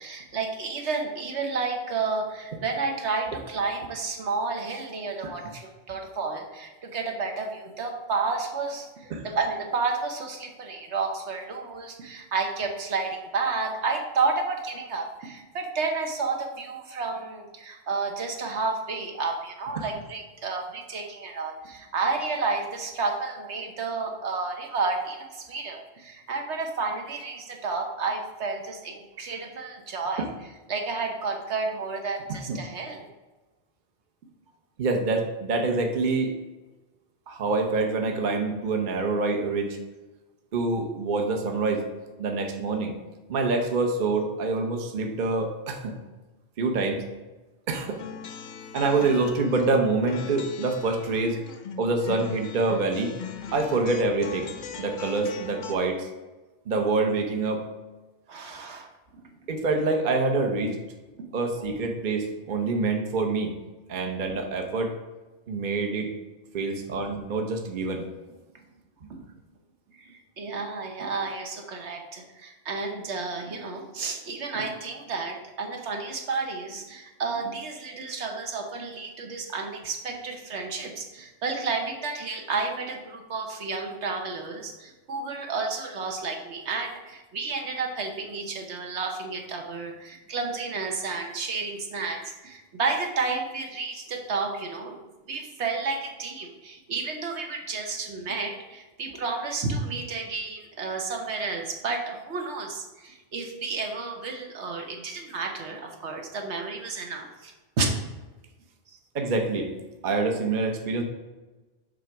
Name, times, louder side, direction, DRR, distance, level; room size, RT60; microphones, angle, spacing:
voice 1, 0.0-33.0 58.3-59.2 61.2-61.4 66.7-66.8 69.1-69.2 69.9-95.0 95.3-107.9 108.9-109.0, right 4 dB, 70° right, 2 dB, 1.2 m, -31 dB
voice 2, 32.3-32.6 34.8-36.3 37.3-39.8 40.5-41.8 42.2-43.0 43.3-46.0 46.6-47.0 47.7-48.0 48.7-51.4 51.8-53.1 53.5-54.5 54.8-56.1 56.7-57.7 59.5-60.8 61.3-63.6 63.9-65.0 65.5-66.1 66.5-68.1 109.1-109.7 110.0-111.0, right 3 dB, 45° right, 3 dB, 0.9 m, -26 dB
sound 1, 47.9-55.7, left 7 dB, 55° left, 0.7 m, -40 dB
7.5 x 3.4 x 5.9 m, 1.2 s
omnidirectional pair, 1.2 m